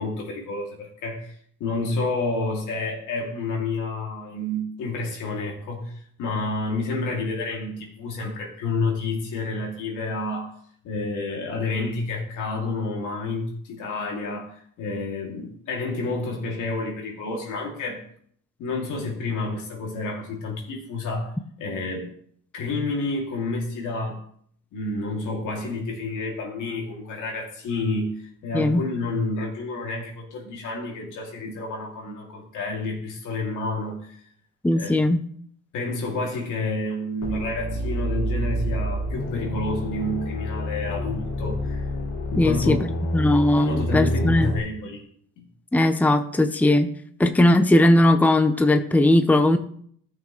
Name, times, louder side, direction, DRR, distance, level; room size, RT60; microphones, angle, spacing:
voice 1, 0.0-10.5 10.8-18.1 18.6-22.1 22.5-24.2 24.7-34.2 34.7-35.0 35.7-41.9 42.3-42.8 43.6-45.1 45.4-45.5, left 2 dB, 90° left, 0 dB, 2.4 m, -29 dB
voice 2, 34.6-35.2 42.4-42.9 43.1-44.5 45.7-46.9 47.2-49.6, left 1 dB, 5° left, 8 dB, 0.6 m, -18 dB
sound 1, 37.2-44.6, equal, 60° left, 2.8 m, -28 dB
14.5 x 6.3 x 3.0 m, 0.62 s
cardioid pair, 90°, 30 cm